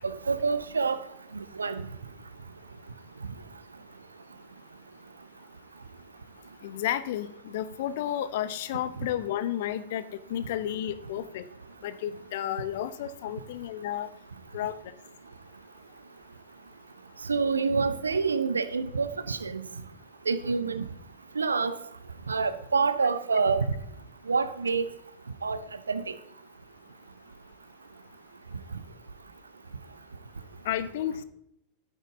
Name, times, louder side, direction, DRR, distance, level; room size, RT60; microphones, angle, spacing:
voice 1, 0.0-1.0 1.6-1.8 17.3-19.6 20.3-20.8 21.4-21.8 22.3-23.7 24.3-24.8 25.4-25.6 25.9-26.0, right 4 dB, 75° right, 0.7 m, -26 dB
voice 2, 6.6-11.4 11.8-14.1 14.5-14.8 30.6-31.2, left 11 dB, 55° left, 0.7 m, -32 dB
11.0 x 9.2 x 3.6 m
figure-of-eight pair, 90°, 0 cm